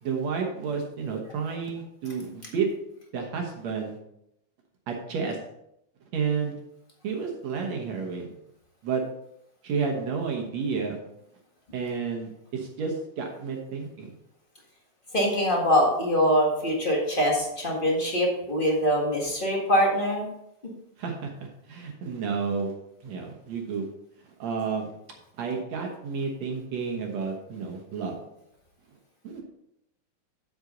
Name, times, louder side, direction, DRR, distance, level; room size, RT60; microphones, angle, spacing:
voice 1, 0.0-2.7 3.1-4.0 4.9-5.4 6.1-6.6 7.0-8.3 8.8-9.0 9.6-11.0 11.7-14.1 21.0-22.7 23.0-23.9 24.4-24.9 25.4-28.1 29.2-29.4, right 5 dB, 60° right, 1 dB, 2.1 m, -31 dB
voice 2, 15.1-20.2, equal, 30° left, -2 dB, 0.9 m, -23 dB
7.9 x 7.9 x 3.8 m, 0.79 s
omnidirectional pair, 3.9 m